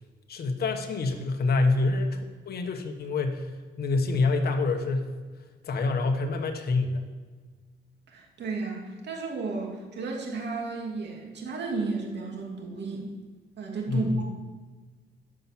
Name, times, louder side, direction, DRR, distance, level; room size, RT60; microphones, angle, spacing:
voice 1, 0.3-2.2 2.5-3.5 3.8-5.1 5.6-7.0 13.9-14.2, left 3 dB, 50° left, 4 dB, 1.1 m, -26 dB
voice 2, 8.1-13.1 13.6-14.2, right 3 dB, 60° right, 0 dB, 2.5 m, -33 dB
10.0 x 5.8 x 7.4 m, 1.4 s
cardioid pair, 90°, 20 cm